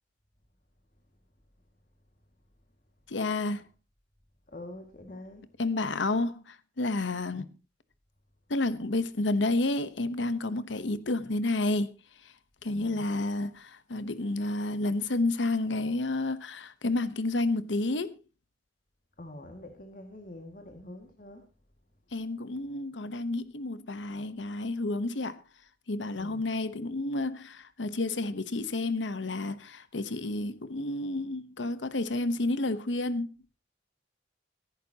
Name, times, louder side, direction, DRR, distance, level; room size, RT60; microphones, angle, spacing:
voice 1, 3.1-3.6 5.6-7.5 8.5-11.9 12.2-12.3 12.6-18.1 22.1-25.4 25.9-33.3, left 2 dB, 80° left, 1.0 m, -30 dB
voice 2, 4.5-5.5 12.7-13.1 19.2-21.4 26.2-26.5, left 1 dB, 45° left, 2.0 m, -45 dB
23.0 x 11.0 x 2.9 m
head